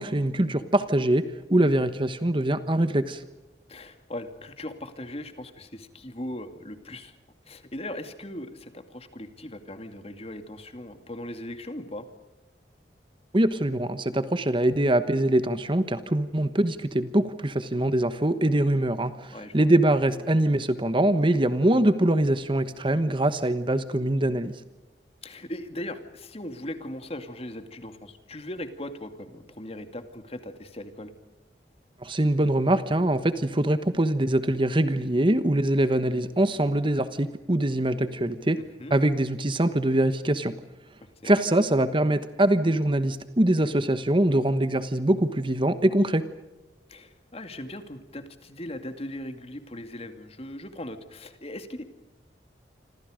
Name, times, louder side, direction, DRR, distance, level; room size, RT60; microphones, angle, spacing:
voice 1, 0.0-3.2 13.3-24.5 32.0-38.6 38.9-40.5 41.2-46.3, right 1 dB, 30° right, 12 dB, 1.1 m, -23 dB
voice 2, 3.7-7.2 7.5-12.1 19.3-19.7 25.2-31.1 38.6-39.0 41.0-41.3 46.9-51.8, left 1 dB, 35° left, 8 dB, 2.4 m, -39 dB
28.0 x 26.0 x 5.1 m, 1.1 s
head